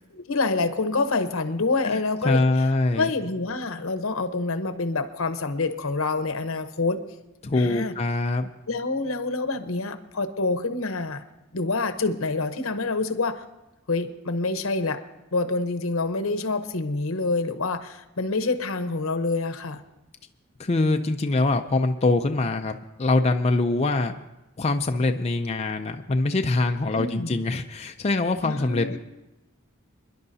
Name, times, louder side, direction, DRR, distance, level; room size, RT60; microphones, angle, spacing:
voice 1, 0.1-2.4 3.0-7.0 7.6-7.9 8.7-11.2 11.5-13.4 13.9-15.0 15.3-19.8 26.9-27.4 28.4-29.0, left 3 dB, 80° left, 8 dB, 0.9 m, -27 dB
voice 2, 1.8-3.1 7.4-8.5 20.6-24.1 24.6-29.0, left 2 dB, 30° left, 5 dB, 0.5 m, -24 dB
28.0 x 11.0 x 2.7 m, 0.98 s
head